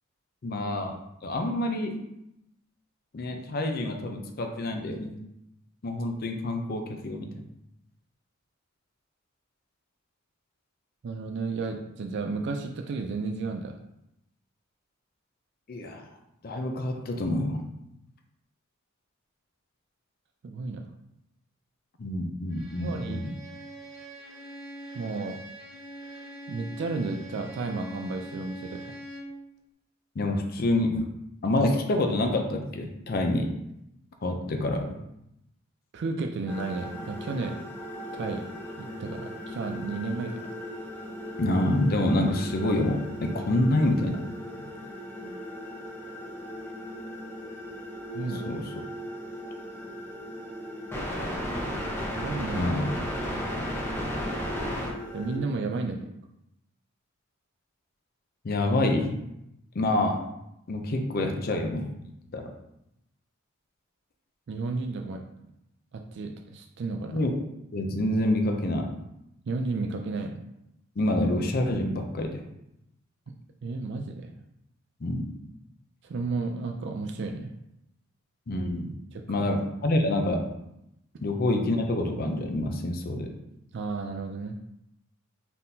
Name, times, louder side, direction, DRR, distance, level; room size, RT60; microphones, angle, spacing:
voice 1, 0.4-0.9 1.2-1.9 3.1-5.1 5.8-7.3 15.7-16.1 16.4-17.6 22.0-23.3 30.2-31.0 31.4-33.6 34.2-35.0 41.4-44.2 48.5-48.7 52.5-52.9 58.4-59.2 59.7-60.3 60.7-61.9 62.3-62.5 67.1-67.3 67.7-68.9 71.0-72.4 75.0-75.2 78.5-78.9 79.3-80.5 81.2-83.3, left 1 dB, 45° left, 4 dB, 0.5 m, -27 dB
voice 2, 11.0-13.8 20.4-20.8 22.8-23.3 24.9-25.4 26.5-28.8 35.9-37.6 38.1-38.5 38.8-40.5 44.6-44.7 45.2-45.4 48.1-48.5 52.1-52.7 55.1-56.1 64.5-65.2 65.9-67.3 69.5-70.4 73.3-73.4 73.6-74.3 76.0-77.5 79.1-79.5 83.7-84.6, right 3 dB, 55° right, 3 dB, 0.4 m, -33 dB
Bowed string instrument, 22.5-29.4, right 1 dB, 85° right, 0.9 m, -43 dB
sound 1, 36.5-55.4, equal, 10° left, 0.8 m, -36 dB
4.1 x 3.6 x 2.7 m, 0.83 s
head